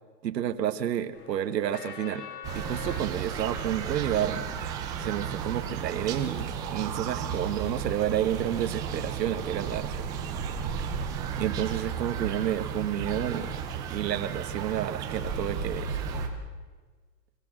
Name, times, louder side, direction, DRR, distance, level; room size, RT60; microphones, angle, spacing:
voice 1, 0.2-2.3 2.5-4.5 5.0-10.0 10.8-10.9 11.4-13.6 13.9-16.2, right 10 dB, 75° right, 9 dB, 1.3 m, -30 dB
sound 1, 1.1-5.4, left 8 dB, 70° left, 3.4 m, -46 dB
Park Ambience, 2.4-16.3, right 7 dB, 10° right, 0.5 m, -34 dB
26.0 x 14.5 x 7.5 m, 1.4 s
hypercardioid pair, 150°, 50 cm